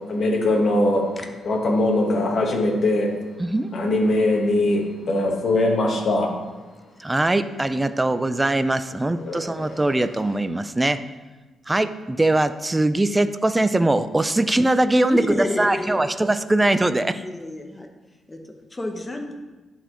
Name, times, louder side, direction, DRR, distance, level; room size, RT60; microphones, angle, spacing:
voice 1, 0.1-1.1 1.4-3.1 3.7-6.3 9.2-9.9, left 1 dB, 50° left, 1 dB, 1.3 m, -21 dB
voice 2, 3.4-3.7 7.0-11.0 11.7-17.2, right 2 dB, 15° right, 11 dB, 0.3 m, -21 dB
voice 3, 15.1-16.1 17.2-17.9 18.3-18.4 18.7-19.3, left 1 dB, 20° left, 4 dB, 0.9 m, -29 dB
10.5 x 4.1 x 3.0 m, 1.2 s
cardioid pair, 100°, 0 cm